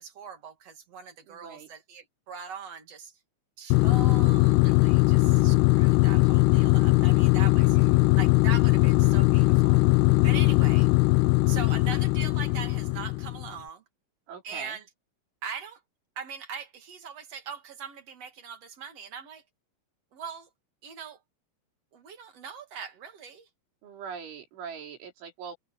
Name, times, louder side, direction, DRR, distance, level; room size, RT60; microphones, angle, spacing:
voice 1, 0.0-3.1 3.6-9.8 10.2-10.9 11.5-13.8 14.4-14.8 15.4-15.8 16.2-19.4 20.1-20.5 20.8-21.2 21.9-23.5, right 6 dB, 45° right, 2.2 m, -41 dB
voice 2, 1.3-1.7 7.6-8.0 14.3-14.8 23.8-25.6, right 6 dB, 80° right, 6.4 m, -42 dB
sound 1, 3.7-13.5, left 22 dB, 90° left, 2.3 m, -20 dB
omnidirectional pair, 5.4 m